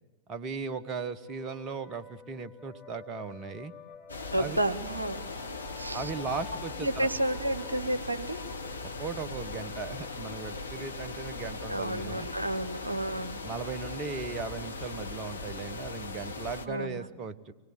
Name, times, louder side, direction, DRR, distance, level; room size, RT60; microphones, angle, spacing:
voice 1, 0.3-3.7 4.4-4.6 5.9-7.1 8.8-12.3 13.4-17.5, right 5 dB, 30° right, 10 dB, 1.1 m, -37 dB
sound 1, 0.7-16.0, left 6 dB, 15° left, 5.1 m, -52 dB
sound 2, 4.1-16.7, left 3 dB, 80° left, 1.1 m, -39 dB
voice 2, 4.3-5.2 5.7-6.1 6.8-8.4 11.7-13.4 16.7-17.1, right 1 dB, 85° right, 9 dB, 0.8 m, -31 dB
24.5 x 19.5 x 6.7 m, 1.2 s
figure-of-eight pair, 90°, 0 cm